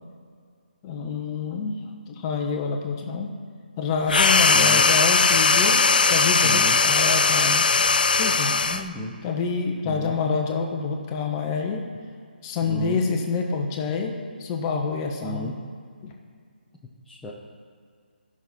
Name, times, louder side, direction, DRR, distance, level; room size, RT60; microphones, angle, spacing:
voice 1, 0.8-1.8 2.1-3.3 3.8-5.8 6.1-7.6 8.2-8.6 9.2-11.8 12.4-14.1 14.4-15.5 16.0-16.1, left 5 dB, 20° left, 2 dB, 1.1 m, -27 dB
sound 1, 4.1-8.9, left 4 dB, 60° left, 0.6 m, -19 dB
voice 2, 4.5-4.8 6.4-6.8 8.7-9.1 9.8-10.2 12.6-13.0 15.2-15.5 17.1-17.3, equal, 5° left, -7 dB, 0.7 m, -34 dB
13.5 x 6.1 x 4.3 m, 2.1 s
figure-of-eight pair, 145°, 6 cm